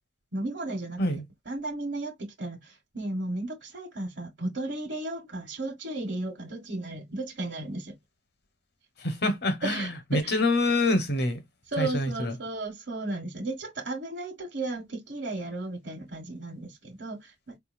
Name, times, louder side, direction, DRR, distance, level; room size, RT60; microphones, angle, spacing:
voice 1, 0.3-7.9 9.6-10.4 11.7-17.6, right 2 dB, 65° right, 1.2 m, -34 dB
voice 2, 9.0-11.4 11.8-12.3, left 2 dB, 55° left, 1.1 m, -26 dB
4.7 x 2.7 x 2.5 m
head